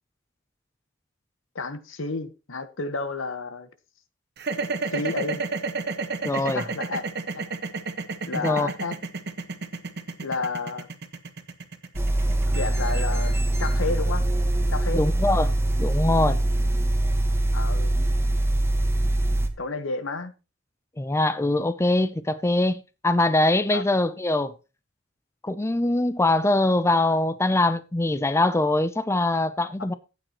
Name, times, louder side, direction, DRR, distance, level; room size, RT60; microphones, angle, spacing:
voice 1, 1.5-3.7 4.9-5.4 6.5-7.0 8.3-9.0 10.2-10.9 12.5-14.3 14.7-15.0 17.5-18.0 19.6-20.3 23.7-23.8, left 3 dB, 80° left, 1.2 m, -31 dB
sound 1, 4.4-14.5, right 4 dB, 55° right, 1.4 m, -31 dB
voice 2, 6.2-6.6 8.4-8.7 14.9-15.5 15.8-16.4 21.0-24.5 25.4-29.9, left 2 dB, 15° left, 0.5 m, -23 dB
sound 2, 11.9-19.5, right 1 dB, 15° right, 1.4 m, -23 dB
13.0 x 8.9 x 3.0 m
head